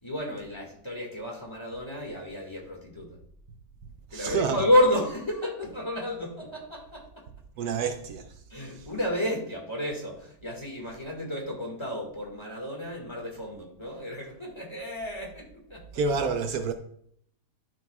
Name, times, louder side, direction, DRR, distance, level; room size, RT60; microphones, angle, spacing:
voice 1, 0.0-3.2 4.1-7.3 8.5-15.8, left 1 dB, 15° left, 1.9 m, -30 dB
voice 2, 4.1-4.7 7.6-8.4 15.9-16.7, right 5 dB, 70° right, 1.1 m, -28 dB
13.0 x 6.3 x 2.4 m
omnidirectional pair, 1.7 m